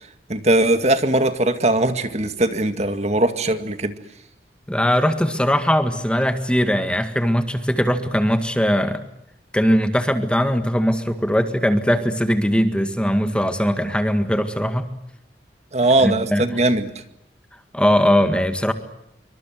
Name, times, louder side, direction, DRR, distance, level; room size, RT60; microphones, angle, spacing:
voice 1, 0.3-3.9 15.7-16.9, right 2 dB, 40° right, 9 dB, 2.1 m, -20 dB
voice 2, 4.7-9.0 9.5-14.9 16.0-16.4 17.7-18.7, equal, 5° left, 8 dB, 1.8 m, -20 dB
27.0 x 25.0 x 7.8 m, 0.79 s
head